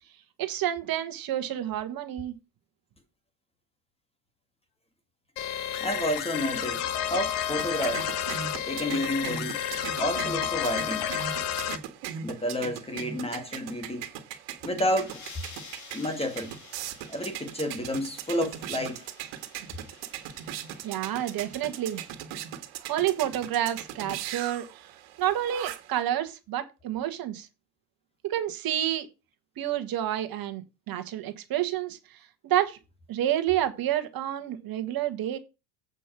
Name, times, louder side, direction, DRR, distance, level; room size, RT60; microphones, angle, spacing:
voice 1, 0.4-2.3 20.8-22.0 22.8-24.9 25.2-27.5 28.2-29.1 29.6-32.0 32.4-32.8 33.1-35.4, right 12 dB, 45° right, 1.5 m, -29 dB
sound 1, 5.4-11.8, left 10 dB, 75° left, 1.3 m, -31 dB
voice 2, 5.8-8.2 8.7-11.1 12.2-14.1 14.6-15.3 15.9-16.5 17.1-19.1, equal, 10° left, 1.7 m, -30 dB
sound 2, 6.8-26.0, right 9 dB, 70° right, 1.9 m, -40 dB
sound 3, 14.8-22.2, left 5 dB, 35° left, 2.3 m, -51 dB
8.3 x 5.4 x 6.0 m
supercardioid pair, 110°, 47 cm